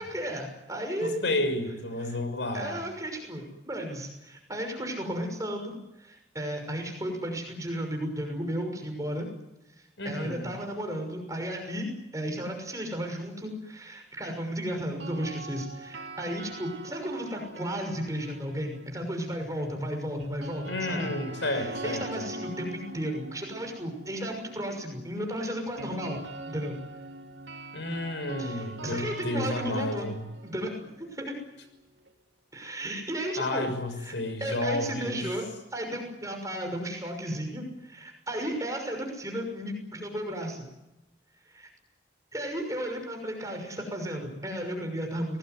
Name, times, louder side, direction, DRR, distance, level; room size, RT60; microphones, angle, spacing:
voice 1, 0.0-1.2 2.0-2.2 2.5-9.3 10.0-21.0 21.4-26.2 26.5-26.8 28.4-30.1 30.4-31.3 32.5-33.7 34.0-34.1 34.4-40.6 41.5-41.7 42.3-45.4, equal, 20° right, 3 dB, 6.1 m, -34 dB
voice 2, 1.0-2.8 10.0-10.5 20.7-22.3 27.7-30.2 33.4-35.2, left 1 dB, 85° left, 9 dB, 6.2 m, -31 dB
sound 1, 14.8-19.0 20.2-32.1, right 2 dB, 80° right, 3.1 m, -43 dB
26.0 x 19.0 x 9.5 m, 0.94 s
head